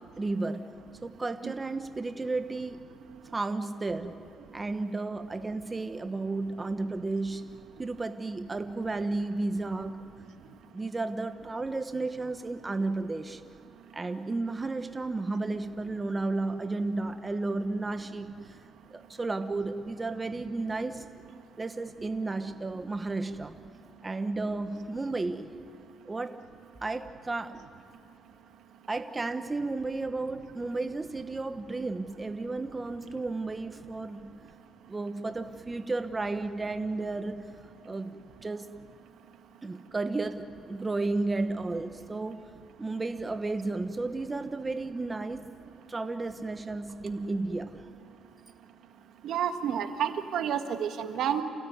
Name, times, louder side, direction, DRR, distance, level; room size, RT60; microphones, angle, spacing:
voice 1, 0.2-0.7 1.0-2.8 3.3-4.2 4.5-7.5 7.8-10.1 10.7-13.4 13.9-18.6 18.9-21.0 21.6-23.6 24.0-25.5 26.0-26.4 26.8-27.6 28.9-34.3 34.9-37.4 37.8-38.7 39.6-42.4 42.8-45.5 45.9-47.8, right 3 dB, 25° right, 9 dB, 1.1 m, -33 dB
voice 2, 49.2-51.4, right 9 dB, 75° right, 7 dB, 1.6 m, -30 dB
28.5 x 17.0 x 9.5 m, 2.9 s
cardioid pair, 90°, 0 cm